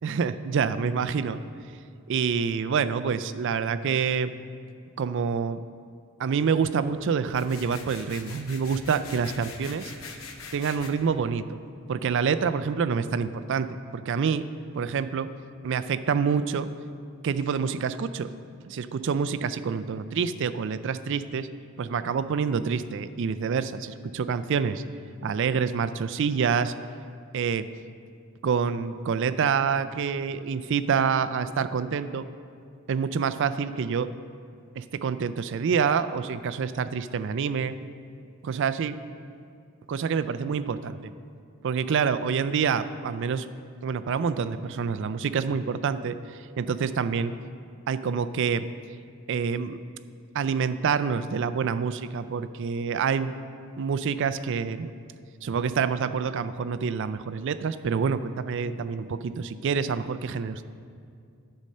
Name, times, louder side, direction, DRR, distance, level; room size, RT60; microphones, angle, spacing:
voice 1, 0.0-1.4 2.1-4.4 5.0-5.6 6.2-9.9 10.5-11.6 11.9-14.4 14.7-15.3 15.6-16.7 17.2-18.3 18.6-21.5 21.8-24.8 25.2-26.7 27.3-27.7 28.4-32.3 32.9-34.1 34.8-37.7 38.4-39.0 39.9-41.1 41.6-43.5 43.8-47.3 47.9-48.7 49.3-49.8 50.3-53.3 53.8-54.9 55.4-60.6, right 6 dB, 55° right, 12 dB, 0.3 m, -27 dB
sound 1, 7.3-10.9, left 4 dB, 65° left, 0.9 m, -43 dB
10.5 x 5.4 x 6.5 m, 2.3 s
head